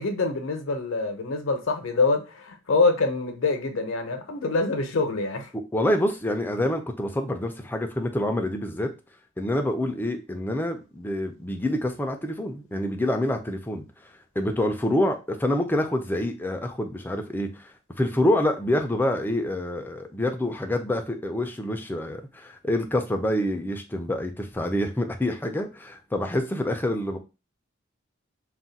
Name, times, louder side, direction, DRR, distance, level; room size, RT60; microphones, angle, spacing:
voice 1, 0.0-5.5, left 3 dB, 70° left, 0.7 m, -25 dB
voice 2, 5.7-8.9 9.4-13.9 14.4-17.7 18.0-27.2, left 1 dB, 10° left, 0.4 m, -27 dB
2.4 x 2.1 x 3.9 m
head